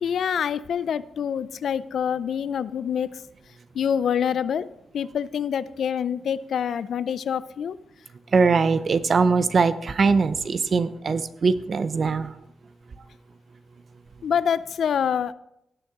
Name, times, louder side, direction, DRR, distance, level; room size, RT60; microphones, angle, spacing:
voice 1, 0.0-3.2 3.7-4.7 4.9-7.8 11.1-11.2 14.2-15.3, left 8 dB, 70° left, 16 dB, 0.4 m, -26 dB
voice 2, 8.3-12.3, right 4 dB, 45° right, 13 dB, 0.6 m, -21 dB
17.5 x 6.6 x 3.6 m, 0.78 s
cardioid pair, 110°, 0 cm